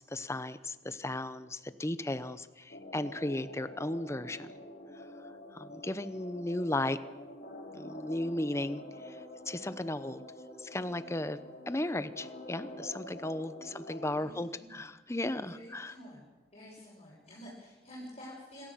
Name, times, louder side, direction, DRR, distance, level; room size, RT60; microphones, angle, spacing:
voice 1, 0.0-4.5 5.5-7.0 7.7-9.2 9.5-10.2 10.6-11.4 11.7-15.9, left 1 dB, 15° left, 13 dB, 0.8 m, -35 dB
sound 1, 2.7-14.2, left 1 dB, 55° left, 4.2 m, -47 dB
voice 2, 14.1-14.8 15.5-16.2 16.5-18.7, equal, 35° left, -6 dB, 6.2 m, -49 dB
26.5 x 14.5 x 7.6 m, 1.2 s
head